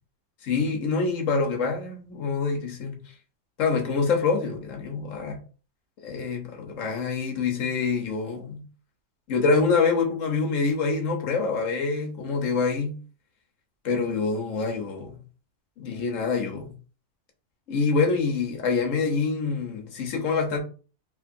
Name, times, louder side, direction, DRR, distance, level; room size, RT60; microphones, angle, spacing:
voice 1, 0.4-2.9 3.6-5.4 6.0-8.6 9.3-13.0 13.8-15.2 15.8-16.7 17.7-20.6, left 4 dB, 65° left, 1.2 m, -26 dB
3.4 x 3.1 x 2.6 m
omnidirectional pair, 1.5 m